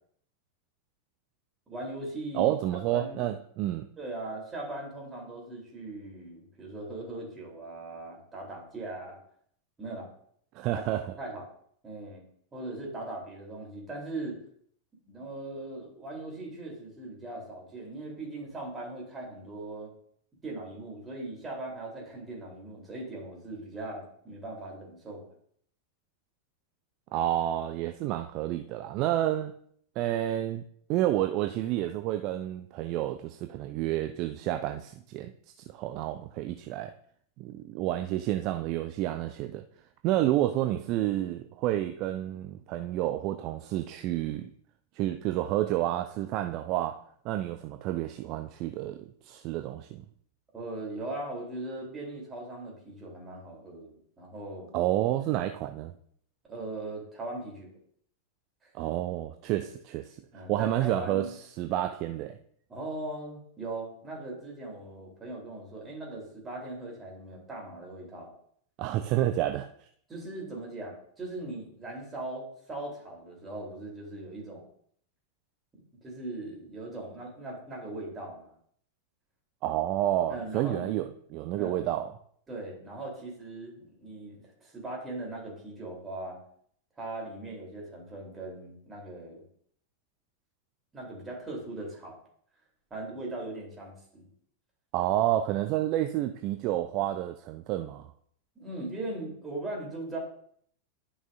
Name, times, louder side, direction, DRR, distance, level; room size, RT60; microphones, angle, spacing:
voice 1, 1.7-3.3 4.0-9.2 9.8-10.1 10.7-10.8 11.1-11.5 11.8-12.2 12.5-14.4 15.1-19.9 20.4-25.3 50.5-54.7 56.4-57.8 58.6-58.7 60.3-61.3 62.7-68.3 70.1-74.6 76.0-78.5 80.3-81.0 81.5-81.9 82.5-86.4 87.0-89.4 90.9-92.2 92.9-94.3 98.5-100.2, right 2 dB, 15° right, 3.4 m, -39 dB
voice 2, 2.3-3.9 10.5-11.0 27.1-29.5 30.0-30.6 30.9-35.3 35.7-36.9 37.4-39.6 40.0-44.5 44.9-50.0 54.7-55.9 58.7-60.2 60.5-61.3 61.6-62.4 68.8-69.9 79.6-82.1 94.9-98.1, right 13 dB, 40° right, 0.4 m, -30 dB
12.0 x 5.5 x 2.6 m
figure-of-eight pair, 90°, 0 cm